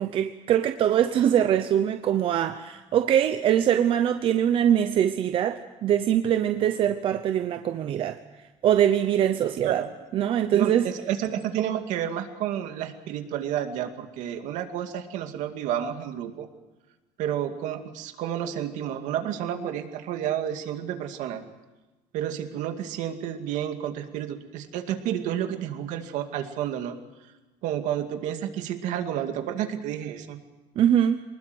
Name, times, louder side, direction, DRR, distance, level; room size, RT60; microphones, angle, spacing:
voice 1, 0.0-8.2 8.6-9.8 10.1-10.9 30.8-31.2, right 10 dB, 45° right, 9 dB, 0.8 m, -23 dB
voice 2, 10.5-16.5 17.2-21.4 22.1-27.0 27.6-30.4, right 10 dB, 70° right, 6 dB, 2.3 m, -30 dB
24.0 x 20.5 x 7.9 m, 1.1 s
cardioid pair, 170°, 13 cm